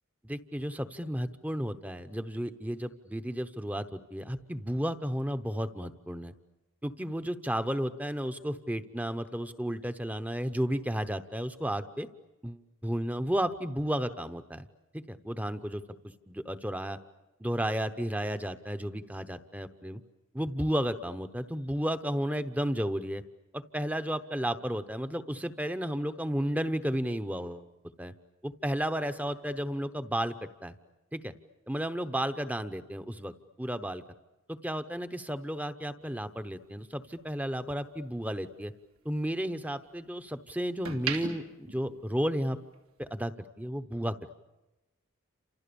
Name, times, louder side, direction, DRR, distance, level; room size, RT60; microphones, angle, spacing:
voice 1, 0.2-6.3 6.8-12.1 12.4-14.7 14.9-15.8 16.3-17.0 17.4-20.0 20.3-23.2 23.5-27.7 28.0-28.1 28.4-30.4 30.6-30.7 31.1-31.3 31.7-34.0 34.5-38.7 39.0-42.6 43.0-44.4, equal, 5° right, 10 dB, 0.9 m, -33 dB
sound 1, 36.0-38.3 38.7-40.2 40.6-42.7 43.0-43.3, right 6 dB, 85° right, 3.1 m, -40 dB
30.0 x 27.5 x 7.0 m, 1.0 s
head